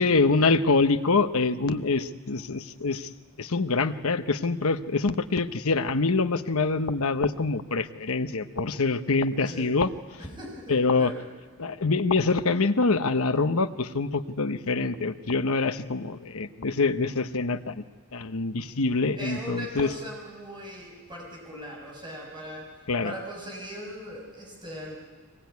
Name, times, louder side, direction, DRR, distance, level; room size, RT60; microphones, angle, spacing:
voice 1, 0.0-3.1 3.4-9.9 10.7-11.1 11.6-17.8 18.1-19.9 22.9-23.1, left 3 dB, 75° left, 10 dB, 1.0 m, -25 dB
voice 2, 10.2-11.2 19.2-22.7 23.0-24.9, equal, 20° right, -1 dB, 6.2 m, -39 dB
23.5 x 21.0 x 9.5 m, 1.4 s
head